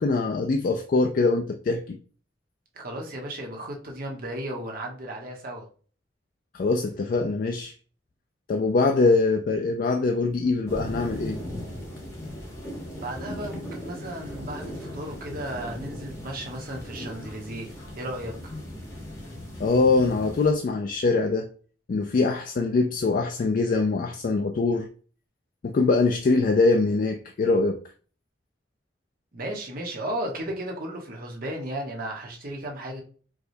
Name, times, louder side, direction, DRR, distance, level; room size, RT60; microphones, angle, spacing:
voice 1, 0.0-2.0 6.5-7.7 8.5-11.4 19.6-21.5 21.9-24.9 25.6-27.8, left 3 dB, 50° left, 0.3 m, -23 dB
voice 2, 2.7-5.7 13.0-17.7 18.0-18.4 29.3-33.0, right 1 dB, 50° right, 1.0 m, -34 dB
sound 1, 10.7-20.5, left 1 dB, 15° left, 1.1 m, -38 dB
4.7 x 2.2 x 2.6 m
head